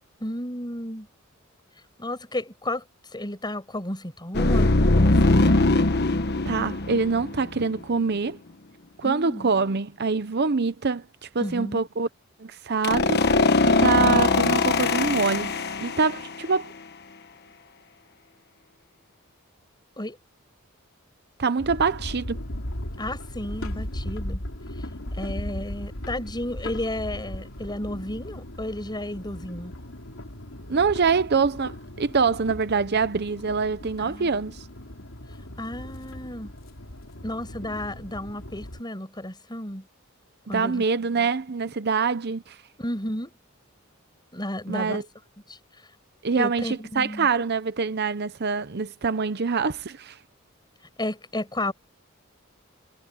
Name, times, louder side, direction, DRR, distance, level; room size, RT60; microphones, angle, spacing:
voice 1, 0.2-1.1 2.0-2.8 3.1-5.5 9.0-9.5 11.4-11.8 20.0-20.2 23.0-24.4 24.8-29.7 34.1-34.3 35.6-36.5 37.2-39.9 40.5-40.8 41.2-41.3 42.8-43.3 44.3-45.0 45.5-45.6 46.4-47.3 51.0-51.7, left 1 dB, 20° left, 6.1 m, -33 dB
sound 1, 4.3-7.8 12.8-16.4, left 2 dB, 50° left, 1.3 m, -21 dB
voice 2, 6.4-8.4 9.0-12.1 12.4-15.5 15.8-16.7 21.4-22.4 30.7-34.7 40.5-42.6 44.7-45.0 46.2-50.2, right 5 dB, 50° right, 0.8 m, -25 dB
sound 2, 21.6-38.8, left 1 dB, 80° left, 3.4 m, -37 dB
head